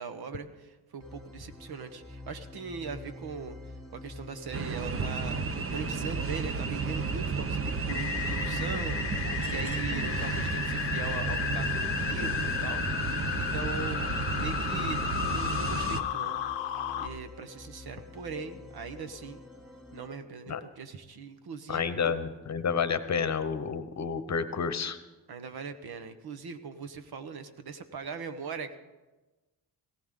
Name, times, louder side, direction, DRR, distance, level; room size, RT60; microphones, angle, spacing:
voice 1, 0.0-3.6 3.9-14.1 14.4-15.0 15.3-16.4 17.0-19.4 19.9-22.2 25.3-28.8, right 5 dB, 60° right, 10 dB, 1.3 m, -40 dB
sound 1, 1.0-20.1, left 2 dB, ahead, 2.6 m, -46 dB
sound 2, 4.5-16.0, right 4 dB, 30° right, 1.0 m, -32 dB
sound 3, 7.9-17.1, left 13 dB, 85° left, 0.8 m, -34 dB
voice 2, 21.7-25.0, left 6 dB, 40° left, 12 dB, 1.0 m, -30 dB
18.5 x 17.0 x 3.8 m, 1.1 s
cardioid pair, 95°, 42 cm